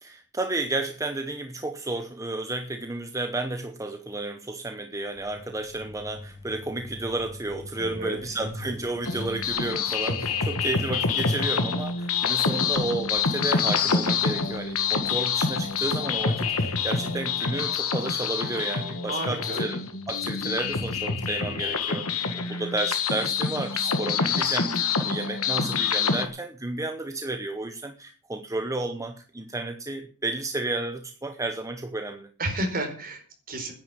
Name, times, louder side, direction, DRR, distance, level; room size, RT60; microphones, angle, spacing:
voice 1, 0.0-32.3, right 2 dB, 15° right, 7 dB, 0.9 m, -32 dB
Truck, 5.2-17.5, left 1 dB, 30° left, 2.5 m, -45 dB
voice 2, 7.7-8.2 19.1-19.7 32.4-33.7, right 2 dB, 40° right, 4 dB, 4.3 m, -32 dB
sound 1, 9.1-26.3, left 5 dB, 70° left, 1.7 m, -26 dB
10.0 x 9.1 x 9.0 m, 0.41 s
head